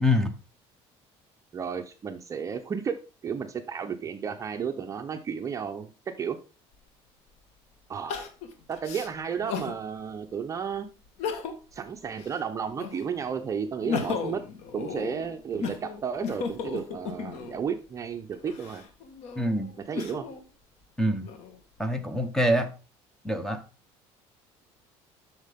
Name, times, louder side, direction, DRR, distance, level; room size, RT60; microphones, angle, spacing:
voice 1, 0.0-0.3 19.4-19.7 21.0-21.3 21.8-22.7 23.2-23.6, left 1 dB, 5° left, 1.0 m, -25 dB
voice 2, 1.5-3.0 3.2-5.9 6.2-6.4 7.9-8.2 8.7-10.9 11.7-14.4 14.7-18.8 19.8-20.2, right 7 dB, 30° right, 0.7 m, -33 dB
Crying sobbing, 6.7-6.8 8.1-9.8 10.3-10.4 11.1-11.8 12.1-13.2 13.6-17.6 18.3-20.4 21.0-21.8, left 6 dB, 70° left, 1.5 m, -35 dB
8.0 x 6.5 x 3.6 m
cardioid pair, 140°, 12 cm